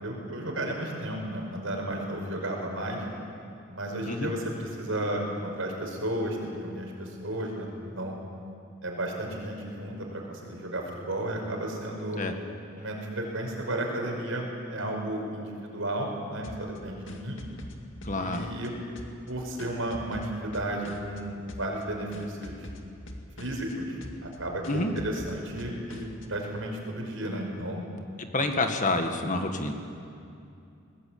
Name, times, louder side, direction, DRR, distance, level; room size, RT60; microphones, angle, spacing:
voice 1, 0.0-3.1 3.7-8.2 8.8-12.2 12.8-17.4 18.1-18.7 19.3-22.6 23.4-27.8, right 1 dB, 75° right, 1 dB, 5.3 m, -33 dB
sound 1, 16.4-18.7 19.0-21.2 21.5-21.8 22.1-23.7 24.0-24.4 24.6-26.3, left 1 dB, 65° left, 2.2 m, -44 dB
voice 2, 18.0-18.5 24.7-24.9 28.2-29.7, left 2 dB, 35° left, 5 dB, 1.8 m, -28 dB
21.0 x 20.5 x 8.8 m, 2.5 s
head